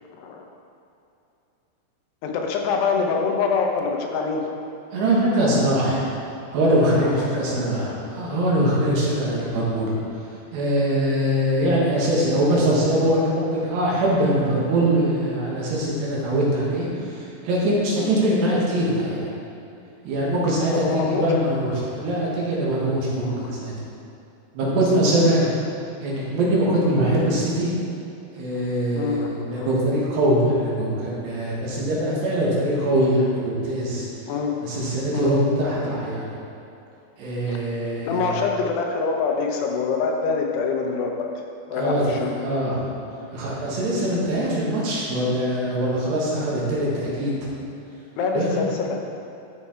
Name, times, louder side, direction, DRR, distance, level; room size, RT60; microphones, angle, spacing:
voice 1, 2.2-4.5 7.0-7.5 18.0-18.2 20.7-21.3 23.3-23.6 28.5-28.6 29.0-29.7 34.3-35.4 37.5-37.6 38.1-41.3 41.7-42.7 43.9-44.1 48.2-49.0, left 5 dB, 75° left, 1 dB, 2.9 m, -26 dB
voice 2, 4.9-6.1 6.5-9.9 10.5-19.3 20.1-23.7 24.6-25.5 26.0-27.7 28.3-29.2 29.5-34.1 34.6-36.3 37.2-38.2 41.8-42.9 43.3-47.5 48.3-48.6, right 1 dB, 75° right, -5 dB, 4.1 m, -22 dB
12.0 x 7.1 x 4.4 m, 2.8 s
omnidirectional pair, 4.9 m